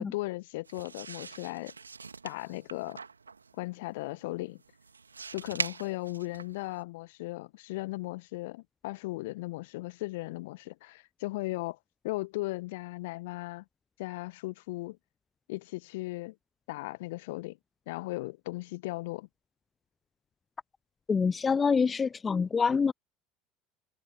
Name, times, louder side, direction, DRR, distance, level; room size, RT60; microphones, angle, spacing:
voice 1, 0.0-1.7 2.2-3.0 3.6-4.6 5.3-11.8 12.0-13.6 14.0-15.0 15.5-16.3 16.7-17.6 17.9-19.3, left 20 dB, 60° left, 1.3 m, -37 dB
sound 1, 0.6-6.8, right 5 dB, 80° right, 2.2 m, -42 dB
voice 2, 21.1-22.9, left 5 dB, 25° left, 0.5 m, -26 dB
figure-of-eight pair, 70°, 0 cm